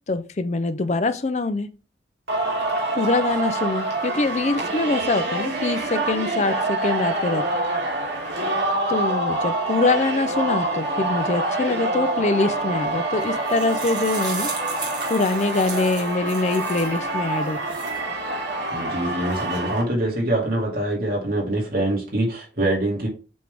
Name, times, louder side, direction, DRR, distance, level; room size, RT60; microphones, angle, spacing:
voice 1, 0.1-1.7 2.9-7.4 8.9-14.5 15.1-17.6, left 3 dB, 40° left, 0.5 m, -24 dB
Singing, 2.3-19.8, right 2 dB, 70° right, 2.5 m, -26 dB
sound 1, 13.2-17.0 17.5-18.0, right 4 dB, 20° right, 1.7 m, -36 dB
voice 2, 18.7-23.1, right 1 dB, 50° right, 2.1 m, -24 dB
7.7 x 3.6 x 3.4 m
head